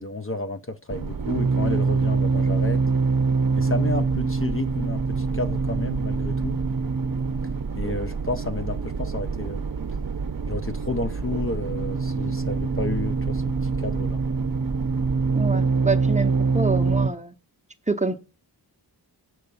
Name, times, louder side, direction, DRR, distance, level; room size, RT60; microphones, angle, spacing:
voice 1, 0.0-2.8 3.5-6.6 7.8-9.6 10.5-14.2, left 2 dB, 30° left, 0.6 m, -31 dB
sound 1, 0.9-17.1, right 4 dB, 50° right, 0.8 m, -25 dB
voice 2, 15.3-17.3 17.9-18.2, right 3 dB, 15° right, 0.7 m, -27 dB
7.8 x 5.3 x 6.8 m
wide cardioid pair, 75°, 42 cm